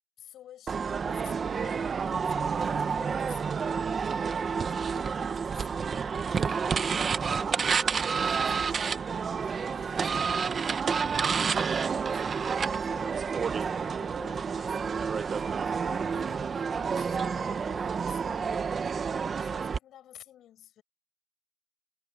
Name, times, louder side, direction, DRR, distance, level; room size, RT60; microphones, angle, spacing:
voice 1, 0.2-20.8, left 11 dB, 75° left, 6.3 m, -54 dB
sound 1, 0.7-19.8, right 6 dB, 45° right, 1.1 m, -29 dB
cardioid pair, 90°, 0 cm